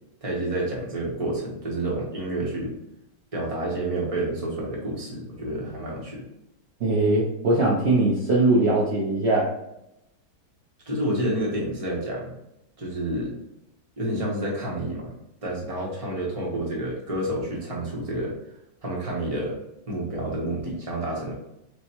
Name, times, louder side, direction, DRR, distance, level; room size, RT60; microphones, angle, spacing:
voice 1, 0.2-2.8 3.3-6.3 10.9-12.3 12.8-13.3 14.0-15.1 15.4-18.4 18.8-19.6 19.9-21.3, right 1 dB, 25° right, -3 dB, 0.8 m, -29 dB
voice 2, 6.8-9.5, right 2 dB, 65° right, -5 dB, 0.6 m, -21 dB
6.5 x 2.2 x 2.9 m, 0.84 s
omnidirectional pair, 2.1 m